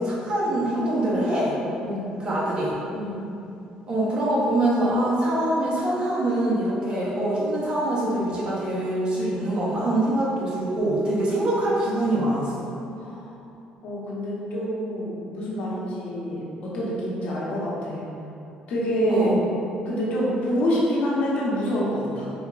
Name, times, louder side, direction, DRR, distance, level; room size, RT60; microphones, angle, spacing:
voice 1, 0.0-1.6 2.2-2.8 3.9-12.7 19.1-19.4, right 1 dB, 35° right, -6 dB, 0.9 m, -24 dB
voice 2, 13.0-13.3 13.8-18.1 18.7-19.3 19.8-22.3, equal, 65° left, -6 dB, 0.9 m, -27 dB
4.2 x 2.9 x 2.4 m, 2.7 s
cardioid pair, 135°, 3 cm